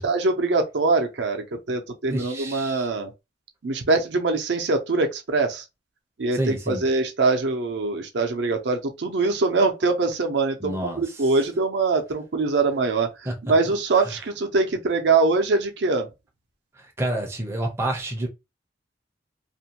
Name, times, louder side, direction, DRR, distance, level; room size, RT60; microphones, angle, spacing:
voice 1, 0.0-3.1 3.6-5.6 6.2-16.1, right 3 dB, 70° right, 0.6 m, -23 dB
voice 2, 2.1-2.9 6.3-6.9 10.6-11.0 13.3-13.4 16.8-18.3, right 1 dB, 15° right, 0.5 m, -28 dB
2.5 x 2.2 x 2.8 m
head